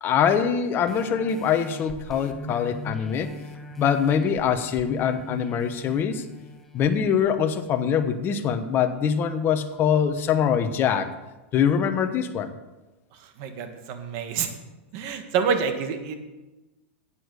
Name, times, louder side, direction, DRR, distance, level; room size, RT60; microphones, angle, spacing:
voice 1, 0.0-3.3 3.8-6.2 6.7-11.1 11.5-12.5, left 7 dB, 30° left, 7 dB, 1.2 m, -23 dB
sound 1, 0.9-8.1 8.6-8.7, left 1 dB, 5° left, 1.2 m, -41 dB
voice 2, 13.4-14.5 14.9-16.2, right 6 dB, 50° right, 7 dB, 1.7 m, -27 dB
10.5 x 8.5 x 6.4 m, 1.1 s
hypercardioid pair, 130°, 7 cm